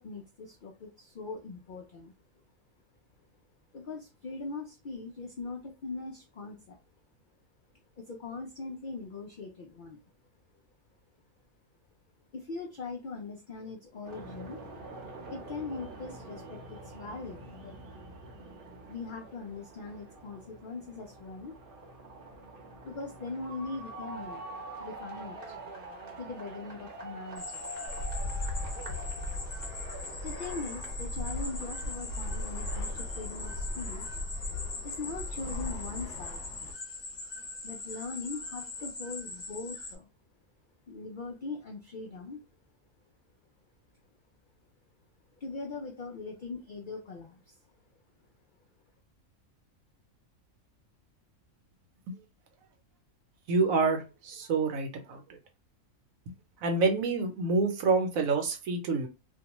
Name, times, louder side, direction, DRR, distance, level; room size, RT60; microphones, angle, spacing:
voice 1, 0.0-2.1 3.7-6.8 8.0-10.0 12.3-14.6 15.3-17.8 18.9-21.6 22.8-25.6 26.2-27.7 30.2-34.2 34.8-36.4 37.6-40.1 40.9-42.4 45.4-47.6, left 3 dB, 90° left, 1 dB, 0.4 m, -41 dB
sound 1, 14.0-33.3, right 2 dB, 50° right, 0.8 m, -46 dB
sound 2, 27.4-39.9, left 3 dB, 25° left, 0.6 m, -42 dB
Fixed-wing aircraft airplane, 27.9-36.7, left 1 dB, 65° left, 0.8 m, -38 dB
voice 2, 53.5-55.2 56.3-56.4 56.6-59.1, right 3 dB, 75° right, 5 dB, 1.1 m, -27 dB
2.5 x 2.2 x 2.9 m, 0.29 s
omnidirectional pair, 1.5 m